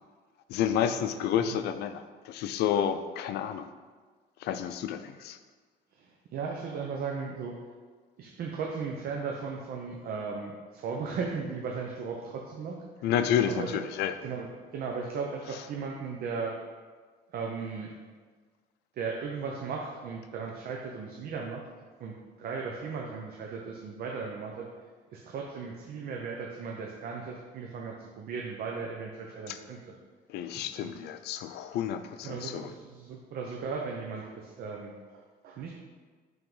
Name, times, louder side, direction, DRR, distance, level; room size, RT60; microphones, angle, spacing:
voice 1, 0.5-3.7 4.4-5.4 13.0-14.1 29.5-29.6 30.3-32.7, left 9 dB, 80° left, 10 dB, 0.5 m, -30 dB
voice 2, 5.9-7.6 8.2-13.1 13.4-13.8 14.2-16.6 17.3-17.9 18.9-21.7 22.0-24.7 25.1-29.9 30.5-31.0 32.2-35.7, right 5 dB, 65° right, 0 dB, 0.8 m, -37 dB
5.8 x 3.7 x 5.4 m, 1.5 s
cardioid pair, 110°, 17 cm